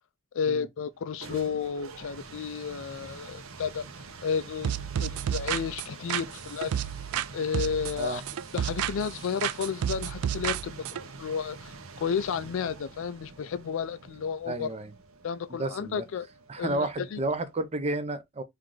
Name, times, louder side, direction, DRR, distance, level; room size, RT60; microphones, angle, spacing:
voice 1, 0.3-3.8 4.2-6.9 7.3-8.2 8.5-10.8 11.2-14.7 15.2-16.3 16.6-17.2, left 6 dB, 60° left, 0.4 m, -32 dB
sound 1, 0.9-17.6, right 4 dB, 65° right, 0.7 m, -46 dB
sound 2, 4.6-7.3 7.5-9.1 9.4-11.0, right 9 dB, 80° right, 0.3 m, -31 dB
voice 2, 14.5-14.9 15.5-16.0 16.5-18.4, right 2 dB, 30° right, 0.5 m, -31 dB
4.5 x 2.5 x 3.7 m
head